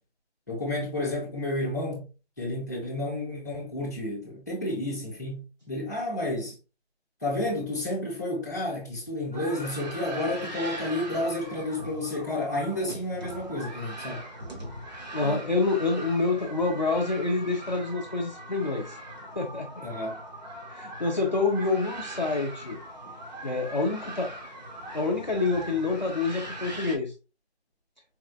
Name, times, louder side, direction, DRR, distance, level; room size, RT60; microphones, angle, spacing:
voice 1, 0.5-2.0 2.4-6.6 7.2-14.2 15.2-15.5 19.8-20.2, left 1 dB, 15° left, 0.8 m, -31 dB
sound 1, 9.3-27.0, right 1 dB, 40° right, 0.9 m, -41 dB
voice 2, 15.1-19.0 19.4-19.9 20.7-22.8 23.4-24.3 24.9-27.1, left 3 dB, 45° left, 0.4 m, -27 dB
4.2 x 2.2 x 2.2 m
figure-of-eight pair, 170°, 33 cm